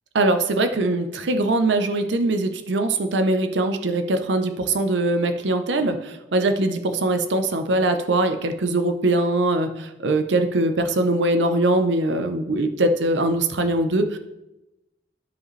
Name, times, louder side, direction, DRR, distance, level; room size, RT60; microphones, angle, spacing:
voice 1, 0.1-14.2, right 2 dB, 80° right, 7 dB, 0.6 m, -22 dB
12.5 x 5.0 x 3.2 m, 0.93 s
head